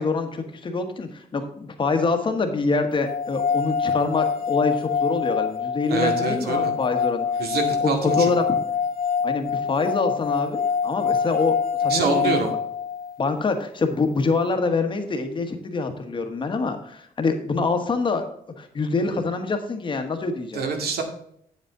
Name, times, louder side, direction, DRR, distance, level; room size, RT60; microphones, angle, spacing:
voice 1, 0.0-7.5 7.8-8.6 9.2-12.4 13.2-18.2 18.6-20.6, left 4 dB, 30° left, 6 dB, 1.3 m, -25 dB
sound 1, 3.1-13.2, left 6 dB, 65° left, 1.1 m, -25 dB
voice 2, 5.9-6.7 7.4-8.3 11.9-12.5 20.5-21.0, right 4 dB, 80° right, 4 dB, 2.1 m, -25 dB
8.7 x 7.9 x 3.8 m, 0.69 s
wide cardioid pair, 170°, 16 cm